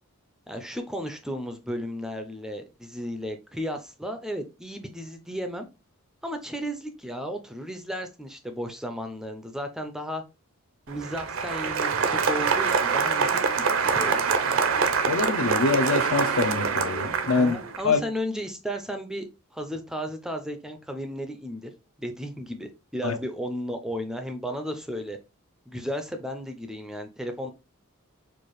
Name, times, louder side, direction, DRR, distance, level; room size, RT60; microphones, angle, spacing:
voice 1, 0.5-5.7 6.2-10.2 10.9-14.2 17.4-19.3 19.5-21.7 22.0-25.2 25.7-27.5, equal, 5° right, 0.4 m, -34 dB
Applause, 10.9-17.8, right 5 dB, 65° right, 0.5 m, -25 dB
voice 2, 15.1-17.6 17.8-18.0 23.0-23.2, left 4 dB, 65° left, 0.5 m, -24 dB
4.5 x 2.4 x 2.9 m
head